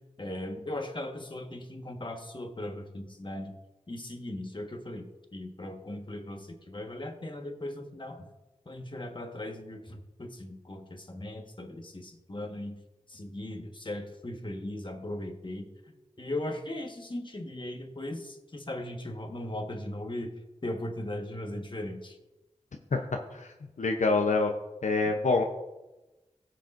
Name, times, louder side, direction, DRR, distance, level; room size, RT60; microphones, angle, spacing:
voice 1, 0.2-3.5 3.9-8.3 8.6-12.8 13.1-15.7 16.2-20.3 20.6-22.2, left 1 dB, 40° left, 3 dB, 1.4 m, -38 dB
voice 2, 23.3-24.5 24.8-25.4, left 3 dB, 80° left, 3 dB, 0.7 m, -26 dB
18.0 x 6.5 x 2.6 m, 1.0 s
cardioid pair, 45°, 12 cm